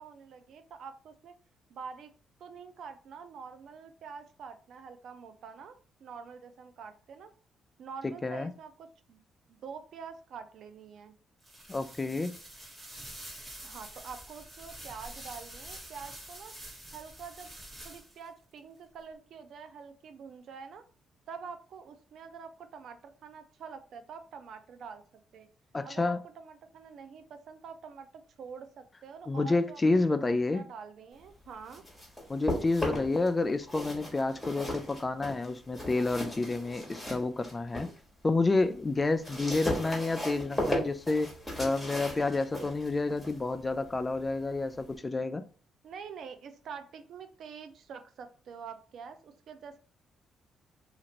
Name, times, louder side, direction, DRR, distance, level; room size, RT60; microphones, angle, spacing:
voice 1, 0.0-1.3 1.7-2.1 2.4-7.3 7.8-9.2 9.5-11.1 13.6-16.5 16.9-17.5 17.8-20.8 21.3-25.0 25.3-25.5 25.8-31.8 39.3-39.6 45.8-49.8, right 6 dB, 70° right, 0.4 m, -46 dB
voice 2, 8.0-8.5 11.7-12.3 25.7-26.2 29.3-30.6 32.3-37.9 38.2-41.3 41.6-45.4, left 3 dB, 25° left, 0.3 m, -29 dB
sound 1, 11.4-18.3, right 1 dB, 30° right, 1.2 m, -47 dB
sound 2, 31.4-33.3 33.6-38.0 38.4-45.0, left 1 dB, 5° left, 1.4 m, -37 dB
2.9 x 2.4 x 2.9 m
cardioid pair, 90°, 0 cm